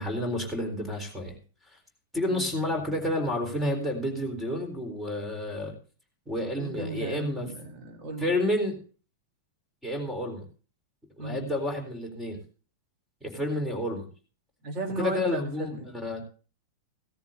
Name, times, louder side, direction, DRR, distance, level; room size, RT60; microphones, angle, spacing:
voice 1, 0.0-1.4 1.7-1.8 2.1-5.7 6.3-7.5 8.2-8.8 9.8-10.4 11.2-12.4 13.2-14.1 15.0-16.2, left 1 dB, 5° right, 4 dB, 3.9 m, -30 dB
voice 2, 6.6-8.3 11.2-11.4 14.6-15.9, right 2 dB, 35° right, 2 dB, 3.5 m, -35 dB
16.5 x 14.0 x 2.7 m, 0.37 s
figure-of-eight pair, 95°, 0 cm